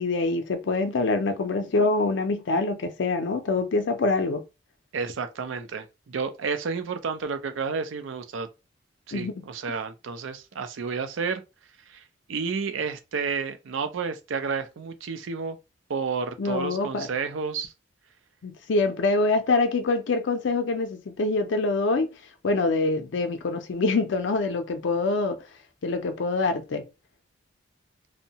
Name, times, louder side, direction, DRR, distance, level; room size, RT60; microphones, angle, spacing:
voice 1, 0.0-4.4 9.1-9.3 16.4-17.1 18.4-22.1 22.4-25.4 25.8-26.8, left 3 dB, 70° left, 0.4 m, -25 dB
voice 2, 4.9-8.5 9.1-11.4 11.9-12.0 12.3-15.6 15.9-17.7, right 5 dB, 85° right, 0.5 m, -31 dB
2.6 x 2.1 x 2.7 m
head